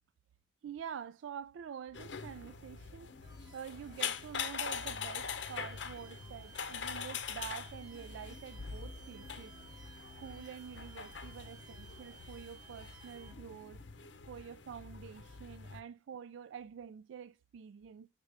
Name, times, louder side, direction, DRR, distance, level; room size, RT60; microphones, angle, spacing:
voice 1, 0.6-9.6 10.2-13.8 14.3-18.1, right 8 dB, 85° right, 0.3 m, -47 dB
sound 1, 1.9-15.8, left 6 dB, 70° left, 0.8 m, -43 dB
sound 2, 3.2-13.3, right 2 dB, 20° right, 1.4 m, -63 dB
sound 3, 4.4-13.3, right 8 dB, 5° right, 3.7 m, -58 dB
6.9 x 6.7 x 3.3 m
head